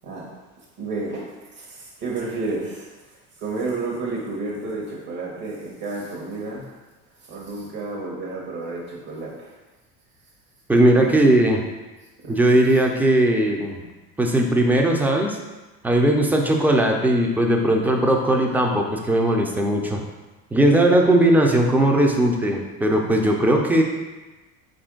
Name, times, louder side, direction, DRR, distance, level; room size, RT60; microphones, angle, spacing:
voice 1, 0.8-6.7 7.2-9.5 10.8-11.2 12.2-12.6, right 3 dB, 55° right, -4 dB, 1.1 m, -31 dB
voice 2, 10.7-11.6 12.3-13.8 14.2-15.4 15.8-20.0 20.5-23.8, right 1 dB, 5° right, 1 dB, 0.4 m, -18 dB
4.2 x 2.6 x 3.7 m, 1.2 s
hypercardioid pair, 80°, 43 cm